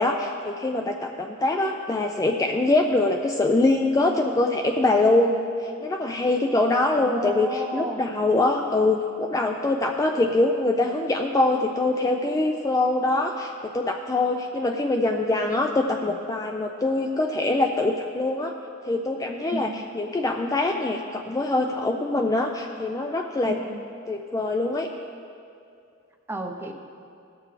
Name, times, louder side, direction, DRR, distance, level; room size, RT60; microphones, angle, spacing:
voice 1, 0.0-18.5 18.8-23.6 24.1-24.9, left 2 dB, 15° left, 3 dB, 0.3 m, -24 dB
voice 2, 7.0-8.0 19.5-19.8 23.5-23.8 26.3-26.7, right 1 dB, 10° right, 3 dB, 0.7 m, -32 dB
17.5 x 6.8 x 3.2 m, 2.5 s
head